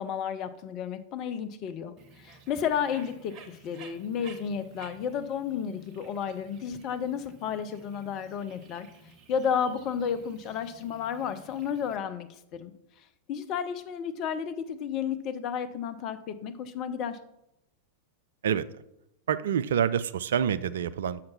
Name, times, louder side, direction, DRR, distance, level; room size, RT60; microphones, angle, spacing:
voice 1, 0.0-8.9 9.3-12.7 13.3-17.2, left 7 dB, 40° left, 12 dB, 0.6 m, -32 dB
Bird, 2.0-12.0, right 3 dB, 35° right, 1.1 m, -53 dB
voice 2, 19.3-21.2, right 8 dB, 60° right, 14 dB, 0.4 m, -27 dB
6.5 x 5.8 x 5.7 m, 0.83 s
figure-of-eight pair, 90°, 0 cm